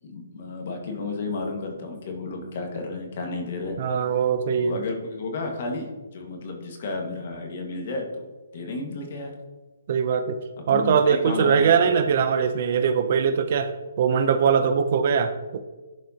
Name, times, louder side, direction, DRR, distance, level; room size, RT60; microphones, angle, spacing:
voice 1, 0.0-3.8 4.5-8.2 8.5-9.3 10.7-11.7, left 3 dB, 50° left, 3 dB, 1.6 m, -32 dB
voice 2, 3.8-4.8 9.9-10.4 10.7-13.7 14.0-15.6, right 6 dB, 45° right, 10 dB, 0.5 m, -21 dB
11.0 x 4.3 x 2.8 m, 1.2 s
hypercardioid pair, 150°, 0 cm